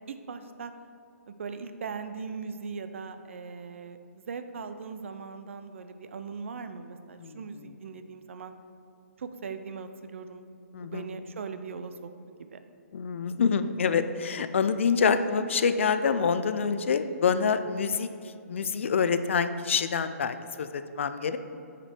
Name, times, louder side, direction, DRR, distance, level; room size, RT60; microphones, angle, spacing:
voice 1, 0.1-0.7 1.3-8.5 9.2-10.5 10.8-12.1 12.4-12.6, right 5 dB, 55° right, 9 dB, 0.5 m, -39 dB
voice 2, 7.2-7.7 10.7-11.1 12.9-18.1 18.5-21.4, left 6 dB, 55° left, 11 dB, 0.4 m, -26 dB
7.4 x 5.2 x 4.3 m, 2.8 s
hypercardioid pair, 170°, 8 cm